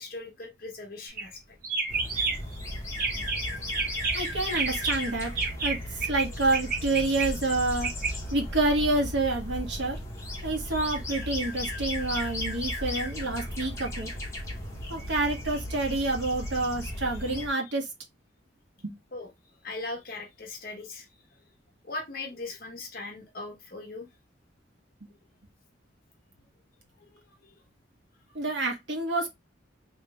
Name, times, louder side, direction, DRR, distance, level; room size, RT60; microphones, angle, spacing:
voice 1, 0.0-1.6 17.1-17.2 17.6-17.7 19.1-19.3 19.6-21.1 21.8-24.1 27.1-27.5, left 3 dB, 50° left, 0.9 m, -39 dB
sound 1, 1.1-1.3 1.6-2.6 2.9-3.4 3.7-6.2 6.5-8.1, right 4 dB, 50° right, 1.2 m, -30 dB
sound 2, 1.9-17.5, left 1 dB, 15° left, 1.1 m, -35 dB
voice 2, 4.1-5.3 5.6-7.9 8.3-10.0 10.4-14.1 14.9-17.9 18.8-18.9 28.3-29.3, right 2 dB, 65° right, 1.2 m, -28 dB
3.2 x 2.9 x 3.3 m
head